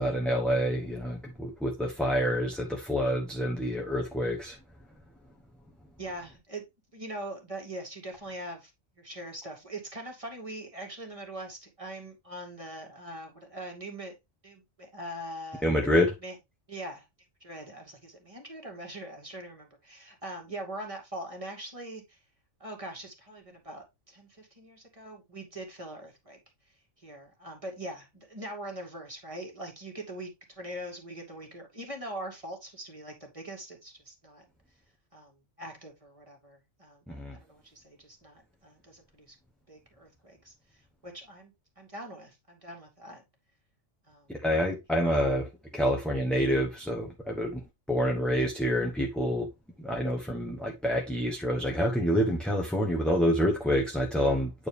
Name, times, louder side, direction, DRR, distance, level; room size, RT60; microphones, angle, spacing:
voice 1, 0.0-4.6 15.6-16.1 37.1-37.4 44.3-45.5 45.7-47.6 47.9-49.5 49.8-54.7, equal, ahead, 0.9 m, -27 dB
voice 2, 6.0-6.6 6.9-8.7 9.0-14.1 14.4-15.6 16.2-16.4 16.7-17.1 17.4-22.2 22.6-26.4 26.6-34.4 35.1-39.4 39.7-43.2 44.0-44.4, right 1 dB, 25° right, 2.2 m, -42 dB
9.0 x 4.5 x 3.3 m
omnidirectional pair, 1.3 m